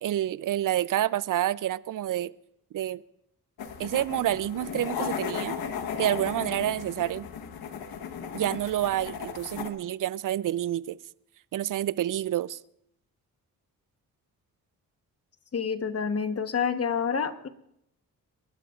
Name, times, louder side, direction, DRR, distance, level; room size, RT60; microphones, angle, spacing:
voice 1, 0.0-2.3 2.7-3.0 3.8-5.6 6.0-7.3 8.3-11.0 11.5-12.6, right 12 dB, 60° right, 0.5 m, -28 dB
sound 1, 3.6-9.7, left 7 dB, 80° left, 1.2 m, -36 dB
voice 2, 15.5-17.5, left 6 dB, 40° left, 1.1 m, -28 dB
29.0 x 12.0 x 2.4 m
cardioid pair, 65°, 37 cm